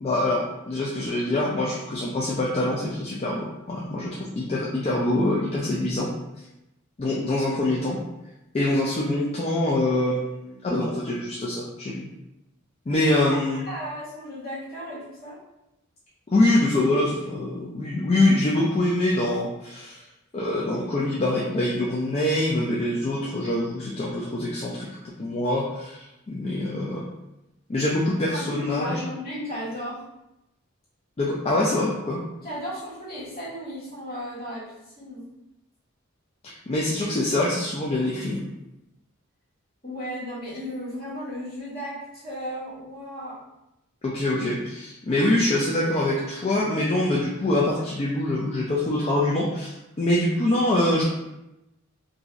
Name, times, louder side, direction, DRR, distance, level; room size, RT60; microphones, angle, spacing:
voice 1, 0.0-6.1 7.0-8.0 8.5-12.1 12.9-13.6 16.3-20.0 20.3-24.9 25.2-27.0 27.7-29.0 31.2-32.2 36.4-38.5 44.0-51.0, left 1 dB, 30° left, -5 dB, 0.4 m, -24 dB
voice 2, 13.7-15.4 28.3-30.0 32.4-35.3 39.8-43.4, equal, 50° left, -10 dB, 1.5 m, -35 dB
2.9 x 2.6 x 2.4 m, 0.92 s
head